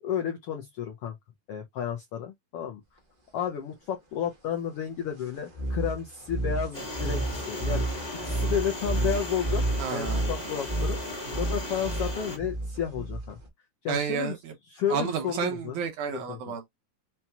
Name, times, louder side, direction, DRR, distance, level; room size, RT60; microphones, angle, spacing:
voice 1, 0.0-1.1 1.5-2.8 3.3-7.8 8.1-9.6 9.9-11.0 11.4-13.4 13.8-14.4 14.7-15.8 16.1-16.5, left 8 dB, 75° left, 1.3 m, -32 dB
sound 1, 5.5-13.5, right 2 dB, 40° right, 0.7 m, -31 dB
sound 2, 6.7-12.4, left 1 dB, 20° left, 1.3 m, -37 dB
voice 2, 9.8-10.3 13.9-14.5 14.9-16.7, right 7 dB, 75° right, 2.2 m, -31 dB
5.5 x 2.9 x 2.2 m
omnidirectional pair, 3.6 m